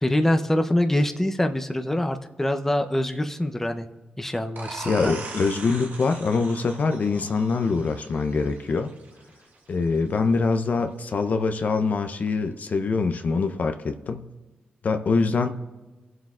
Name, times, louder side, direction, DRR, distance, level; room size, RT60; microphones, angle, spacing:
voice 1, 0.0-3.9 4.2-5.1, left 1 dB, 10° left, 6 dB, 0.7 m, -24 dB
sound 1, 4.6-10.0, right 4 dB, 70° right, 1.4 m, -40 dB
voice 2, 4.9-8.9 9.7-14.2 14.8-15.5, left 4 dB, 55° left, 7 dB, 0.6 m, -24 dB
22.5 x 7.7 x 2.4 m, 1.2 s
cardioid pair, 65°, 3 cm